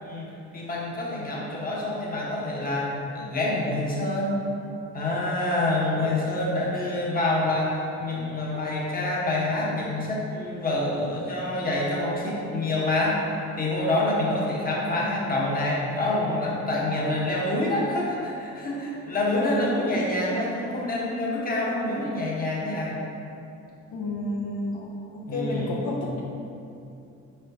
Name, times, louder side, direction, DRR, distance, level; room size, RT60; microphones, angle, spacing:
voice 1, 0.0-4.4 4.9-13.2 13.6-23.0 24.7-24.9 25.3-25.7, left 1 dB, 30° left, -4 dB, 1.0 m, -27 dB
voice 2, 16.1-16.8 19.2-20.1 23.9-24.8 25.1-26.2, left 2 dB, 75° left, -3 dB, 0.7 m, -31 dB
4.4 x 4.3 x 2.6 m, 2.7 s
cardioid pair, 90°, 30 cm